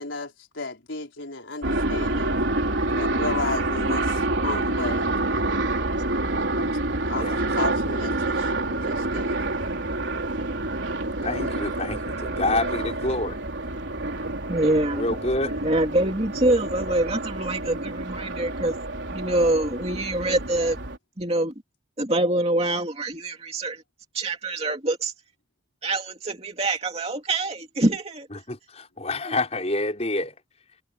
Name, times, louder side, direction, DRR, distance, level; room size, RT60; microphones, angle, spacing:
voice 1, 0.0-2.3 2.9-5.1 6.6-6.7 7.1-9.4, left 3 dB, 85° left, 4.4 m, -33 dB
sound 1, 1.6-21.0, right 2 dB, 75° right, 3.9 m, -28 dB
voice 2, 11.2-13.3 14.9-15.5 28.3-30.4, left 2 dB, 35° left, 5.2 m, -27 dB
voice 3, 14.5-15.1 15.6-18.7 19.1-20.8 21.2-21.5 22.0-23.8 24.1-25.1 25.8-28.3 29.2-29.3, right 1 dB, 30° right, 2.5 m, -25 dB
head